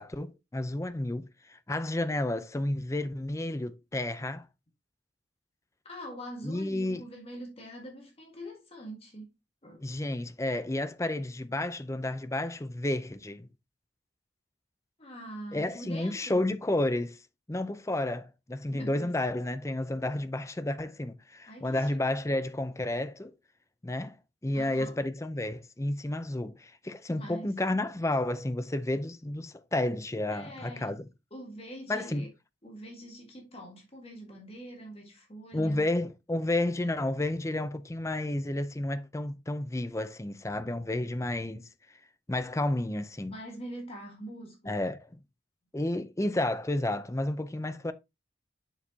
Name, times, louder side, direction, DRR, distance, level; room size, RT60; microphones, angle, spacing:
voice 1, 0.0-4.5 6.4-7.0 9.8-13.5 15.5-17.2 17.5-23.3 23.8-24.2 24.4-31.0 31.9-32.2 35.5-41.7 42.3-43.4 44.7-45.0 45.7-47.9, left 1 dB, 15° left, 0.5 m, -31 dB
voice 2, 5.8-9.3 9.6-9.8 15.0-16.4 18.7-19.1 21.5-22.0 24.5-25.0 27.1-27.5 30.3-31.0 31.3-32.3 32.6-35.9 43.3-44.8, right 1 dB, 30° left, 1.7 m, -44 dB
7.1 x 6.4 x 2.8 m
head